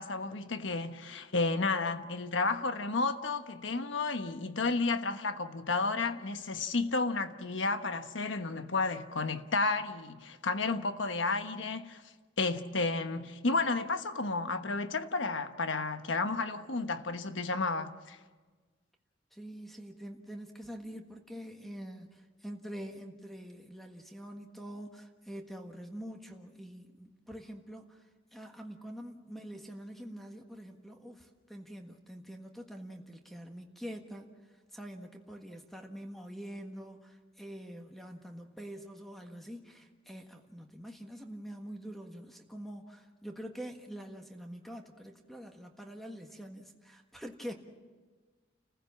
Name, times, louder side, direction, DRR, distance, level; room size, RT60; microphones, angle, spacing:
voice 1, 0.0-12.0 12.4-18.2, left 3 dB, 80° left, 1.3 m, -32 dB
voice 2, 19.3-34.3 34.7-47.5, equal, ahead, 1.5 m, -45 dB
29.5 x 15.5 x 7.3 m
head